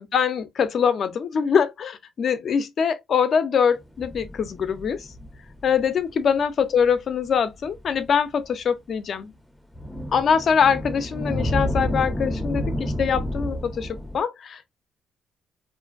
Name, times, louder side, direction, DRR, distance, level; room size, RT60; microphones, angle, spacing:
voice 1, 0.0-5.0 5.6-9.3 10.1-13.9 14.1-14.7, left 7 dB, 55° left, 0.4 m, -23 dB
sound 1, 3.8-6.0 6.8-6.9 7.7-8.1 9.7-14.2, equal, ahead, 0.5 m, -30 dB
2.5 x 2.2 x 2.4 m
cardioid pair, 90°, 0 cm